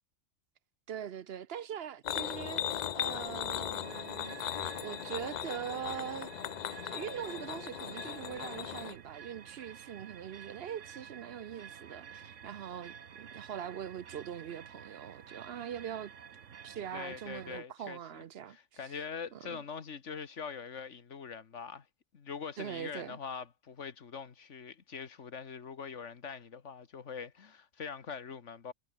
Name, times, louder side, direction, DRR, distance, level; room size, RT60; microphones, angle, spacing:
voice 1, 0.9-4.4 4.8-6.3 6.8-16.1 16.6-18.6 18.8-18.9 19.3-19.6 22.6-23.2, right 9 dB, 60° right, 0.8 m, -42 dB
sound 1, 2.0-9.0, left 10 dB, 55° left, 0.5 m, -38 dB
sound 2, 3.8-17.6, right 7 dB, 85° right, 1.5 m, -51 dB
voice 2, 16.9-21.9 22.1-28.7, left 6 dB, 80° left, 1.8 m, -43 dB
omnidirectional pair, 1.2 m